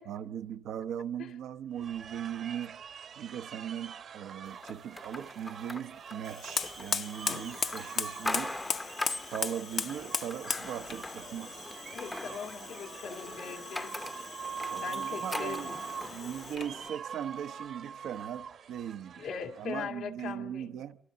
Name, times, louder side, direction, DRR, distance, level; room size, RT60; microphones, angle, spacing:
voice 1, 0.0-2.8 3.2-8.6 9.2-11.7 14.7-15.8 16.0-21.0, right 9 dB, 80° right, 0.8 m, -39 dB
sound 1, 1.7-19.8, right 7 dB, 65° right, 1.3 m, -44 dB
sound 2, 4.6-16.9, left 2 dB, 15° left, 0.8 m, -42 dB
Fire, 6.2-16.8, left 6 dB, 55° left, 0.9 m, -38 dB
voice 2, 11.9-13.9 14.8-15.8 19.2-20.7, left 6 dB, 90° left, 2.5 m, -40 dB
27.5 x 25.5 x 4.0 m
cardioid pair, 90°, 0 cm